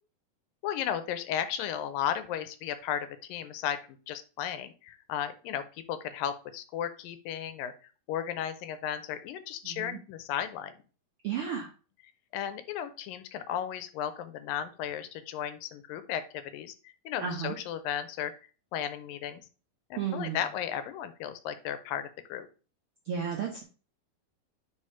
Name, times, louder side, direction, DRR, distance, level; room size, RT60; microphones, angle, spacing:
voice 1, 0.6-7.7 8.1-10.7 12.3-18.3 18.7-19.4 19.9-22.5, left 9 dB, 90° left, 11 dB, 2.4 m, -35 dB
voice 2, 9.6-10.0 11.2-11.7 17.2-17.5 20.0-20.4 23.1-23.6, right 7 dB, 75° right, 1 dB, 1.2 m, -33 dB
5.0 x 4.9 x 5.5 m, 0.35 s
omnidirectional pair, 4.0 m